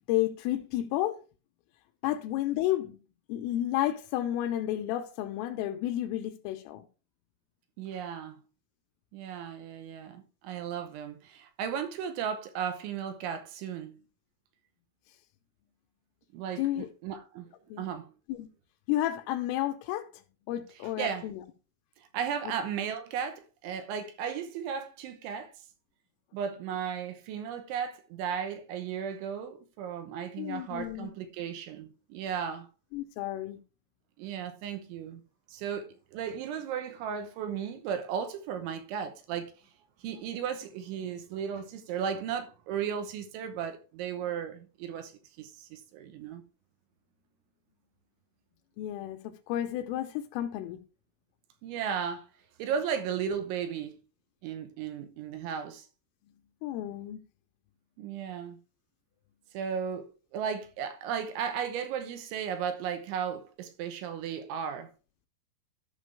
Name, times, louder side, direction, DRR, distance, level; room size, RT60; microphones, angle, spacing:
voice 1, 0.1-1.2 2.0-3.0 3.3-6.8 16.6-16.9 17.7-17.8 18.3-18.5 18.9-20.1 20.5-21.4 30.4-31.1 32.9-33.6 48.8-50.8 56.6-57.2, left 13 dB, 80° left, 3.3 m, -31 dB
voice 2, 7.8-8.4 9.1-14.0 16.3-17.5 17.8-18.1 21.0-21.3 22.1-25.5 26.3-32.7 34.2-35.2 35.5-39.5 40.0-45.1 45.4-46.4 51.6-52.3 52.6-54.0 54.4-55.9 58.0-58.6 59.5-64.9, right 7 dB, 75° right, 3.1 m, -35 dB
13.5 x 5.9 x 3.5 m
omnidirectional pair, 6.0 m